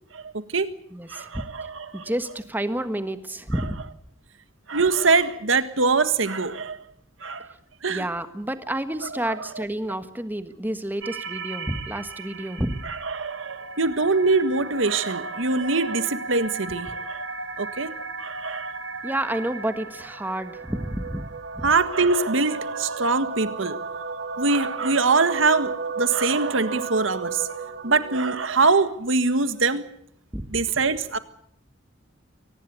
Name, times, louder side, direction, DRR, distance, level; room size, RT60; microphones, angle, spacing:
voice 1, 0.1-0.7 1.1-2.0 4.7-6.8 7.2-7.5 7.8-8.0 9.3-9.4 13.1-17.2 17.6-17.9 18.2-18.7 21.6-23.8 24.4-27.4 27.8-29.9 30.5-31.2, right 3 dB, 90° right, 1.5 m, -23 dB
voice 2, 0.9-1.4 1.9-3.8 7.5-7.6 7.9-12.9 19.0-21.3 21.5-21.7 30.3-30.6, right 1 dB, 10° right, 1.5 m, -30 dB
sound 1, 11.0-28.3, right 4 dB, 60° right, 2.3 m, -35 dB
23.5 x 19.0 x 8.3 m
head